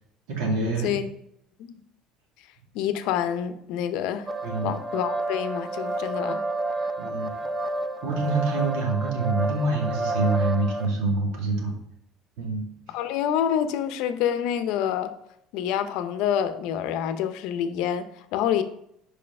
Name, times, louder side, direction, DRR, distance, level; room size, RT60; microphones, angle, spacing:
voice 1, 0.3-0.9 4.4-4.8 7.0-7.3 8.0-11.8 12.4-13.0, right 3 dB, 80° right, 2.2 m, -26 dB
voice 2, 2.7-4.3 4.6-6.4 12.9-15.1 15.5-18.6, left 9 dB, 70° left, 0.6 m, -27 dB
sound 1, 4.3-10.9, right 2 dB, 20° right, 0.7 m, -30 dB
5.5 x 5.0 x 5.3 m
cardioid pair, 145°, 0 cm